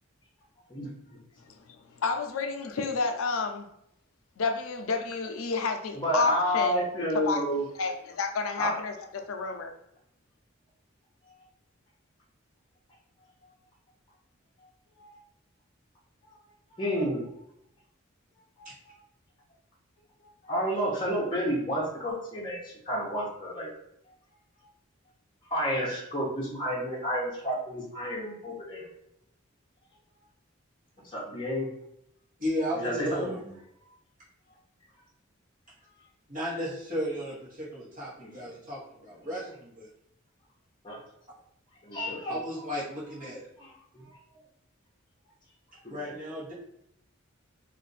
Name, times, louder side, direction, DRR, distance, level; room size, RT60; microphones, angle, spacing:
voice 1, 1.4-3.7 4.4-6.9 7.1-7.4 7.8-9.7, left 4 dB, 85° left, 5 dB, 0.5 m, -30 dB
voice 2, 5.9-7.6 8.6-8.7 15.0-15.2 16.2-16.3 16.7-17.2 18.6-19.0 20.4-23.7 25.5-28.9 31.1-31.7 32.8-33.3 38.2-38.3 40.8-41.0 41.8-42.4 43.6-43.7 45.8-46.0, equal, 25° left, -5 dB, 0.8 m, -30 dB
voice 3, 32.4-33.6 36.3-39.9 42.3-43.4 45.9-46.5, equal, 40° right, -8 dB, 1.1 m, -34 dB
2.5 x 2.5 x 3.9 m, 0.77 s
head